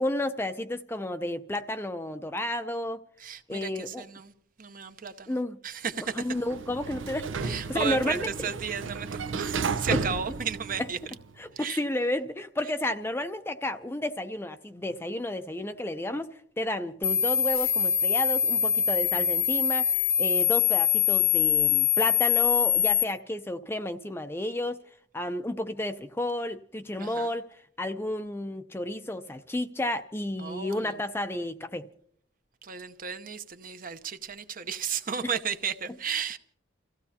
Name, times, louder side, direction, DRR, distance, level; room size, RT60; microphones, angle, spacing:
voice 1, 0.0-3.0 3.5-4.1 5.3-5.6 6.1-8.5 10.8-10.9 11.4-24.8 25.1-27.5 27.8-31.9, left 1 dB, 10° left, 0.5 m, -31 dB
voice 2, 3.2-4.3 4.6-5.3 5.6-6.2 7.4-11.0 11.5-11.8 27.0-27.3 30.4-31.0 32.6-36.4, right 7 dB, 45° right, 0.8 m, -34 dB
Sliding door, 6.1-11.3, right 4 dB, 85° right, 0.7 m, -33 dB
sound 1, 17.0-23.0, left 10 dB, 45° left, 0.9 m, -24 dB
29.5 x 15.5 x 2.8 m
head